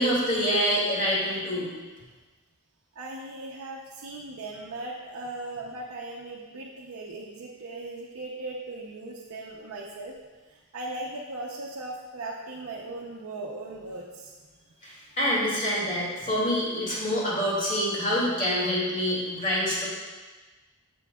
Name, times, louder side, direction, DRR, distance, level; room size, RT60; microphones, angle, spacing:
voice 1, 0.0-1.7 14.8-19.9, equal, 35° left, -6 dB, 2.2 m, -26 dB
voice 2, 2.9-10.2 10.4-14.3, right 2 dB, 80° right, -3 dB, 0.7 m, -38 dB
13.0 x 4.5 x 2.3 m, 1.3 s
head